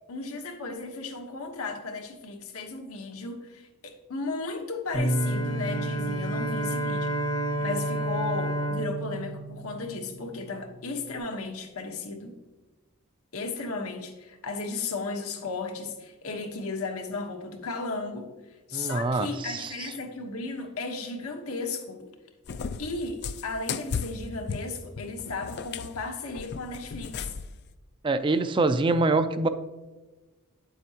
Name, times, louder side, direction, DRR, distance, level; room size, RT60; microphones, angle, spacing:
voice 1, 0.1-7.1 7.6-12.4 13.3-18.3 18.7-22.1 22.8-27.3, left 3 dB, 80° left, 4 dB, 1.2 m, -35 dB
Bowed string instrument, 4.9-10.4, right 1 dB, 20° left, 0.7 m, -31 dB
Bass guitar, 4.9-11.2, right 1 dB, 65° right, 1.4 m, -35 dB
voice 2, 18.7-19.9 28.0-29.5, right 3 dB, 25° right, 10 dB, 0.3 m, -25 dB
Cat, 22.5-27.6, left 5 dB, 50° left, 0.4 m, -36 dB
9.1 x 7.7 x 2.8 m, 1.2 s
head